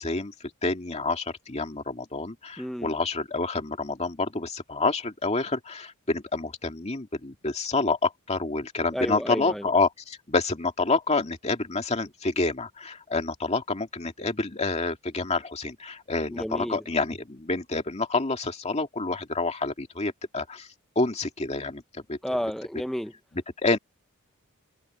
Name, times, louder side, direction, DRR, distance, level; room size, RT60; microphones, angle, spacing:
voice 1, 0.0-20.7 21.0-21.8 22.1-22.2 23.3-23.8, left 3 dB, 30° left, 2.3 m, -28 dB
voice 2, 2.6-2.9 8.9-9.7 16.3-16.8 22.2-23.1, equal, ahead, 0.5 m, -31 dB
head